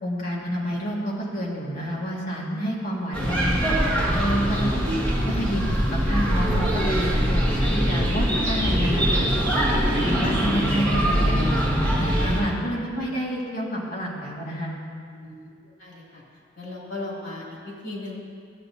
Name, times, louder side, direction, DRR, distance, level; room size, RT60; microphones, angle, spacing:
voice 1, 0.0-4.7 5.3-9.3 9.9-14.7, equal, 50° left, -4 dB, 1.7 m, -29 dB
sound 1, 3.1-12.4, equal, 5° left, 1.9 m, -23 dB
voice 2, 15.1-16.2 16.6-18.2, left 2 dB, 90° left, -4 dB, 2.5 m, -37 dB
13.5 x 7.8 x 2.7 m, 2.2 s
head